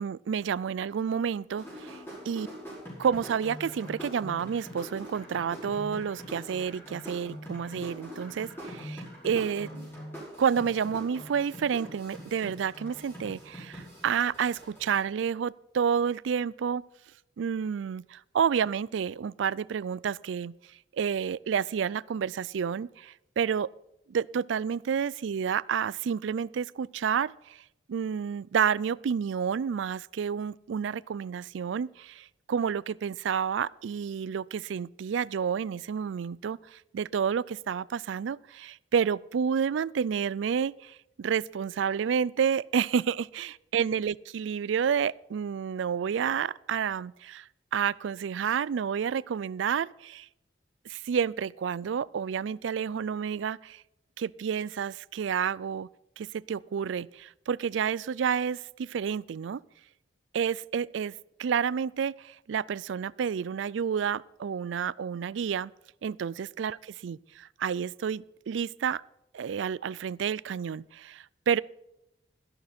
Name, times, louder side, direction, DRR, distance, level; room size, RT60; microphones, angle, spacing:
voice 1, 0.0-1.9 2.3-2.5 3.0-9.9 10.4-16.8 17.4-20.5 21.0-23.7 24.1-27.6 27.9-47.4 47.7-50.3 50.9-53.8 54.2-55.9 56.2-59.6 60.3-61.1 61.4-65.7 66.0-69.0 69.3-71.6, right 7 dB, 80° right, 0.4 m, -30 dB
sound 1, 1.6-15.0, equal, 10° left, 5.1 m, -43 dB
13.0 x 11.5 x 4.3 m
head